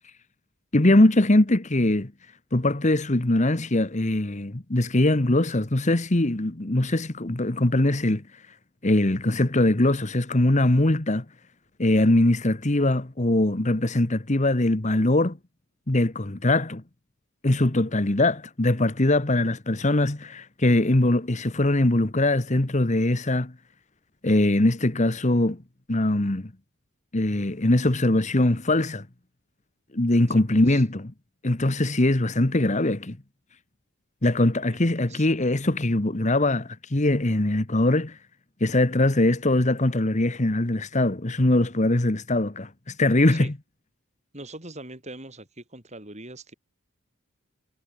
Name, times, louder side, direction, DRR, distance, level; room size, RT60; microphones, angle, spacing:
voice 1, 0.7-2.1 2.5-8.2 8.8-11.2 11.8-15.4 15.9-16.8 17.4-23.5 24.2-25.6 25.9-26.5 27.1-29.1 29.9-31.1 31.4-33.2 34.2-38.2 38.6-43.5, left 1 dB, 35° left, 1.2 m, -22 dB
voice 2, 30.3-30.8 34.7-34.8 35.1-35.3 43.3-43.5 44.3-46.5, right 2 dB, 30° right, 5.5 m, -42 dB
head